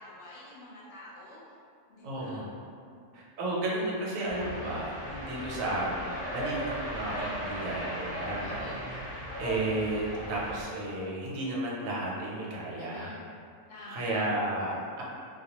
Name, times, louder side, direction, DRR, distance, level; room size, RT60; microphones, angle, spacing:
voice 1, 0.0-1.4 1.9-2.5 2.9-3.1 4.5-4.9 5.5-5.9 8.4-8.9 12.8-13.2 13.7-14.2 14.6-14.7, left 1 dB, 70° left, -6 dB, 0.8 m, -48 dB
voice 2, 2.0-2.5 3.1-13.1 13.9-15.0, right 1 dB, 85° right, -4 dB, 1.0 m, -33 dB
sound 1, 4.3-10.6, equal, 15° right, 0.7 m, -37 dB
2.2 x 2.1 x 2.8 m, 2.4 s
omnidirectional pair, 1.4 m